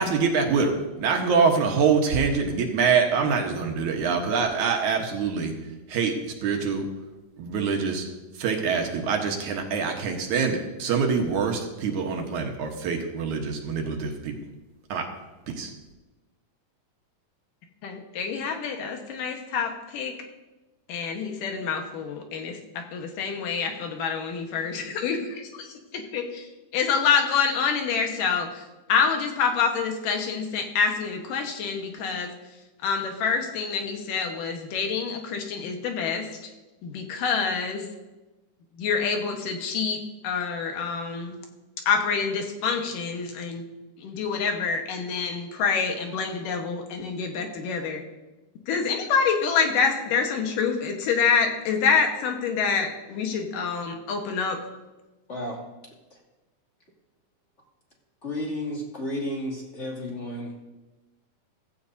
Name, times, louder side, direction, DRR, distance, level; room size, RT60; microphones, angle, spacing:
voice 1, 0.0-5.5 5.9-6.1 6.4-6.9 7.4-8.1 8.4-14.3 14.9-15.1 15.5-15.7, right 5 dB, 70° right, 2 dB, 2.5 m, -25 dB
voice 2, 17.8-20.1 20.9-28.6 28.9-32.3 32.8-36.5 36.8-37.9 38.8-41.4 41.9-43.6 44.0-48.0 48.7-54.6, left 6 dB, 90° left, 3 dB, 3.0 m, -27 dB
voice 3, 55.3-55.6 56.1-56.2 58.2-60.7, left 1 dB, 25° left, -2 dB, 2.5 m, -32 dB
15.5 x 15.0 x 2.7 m, 1.1 s
omnidirectional pair, 3.7 m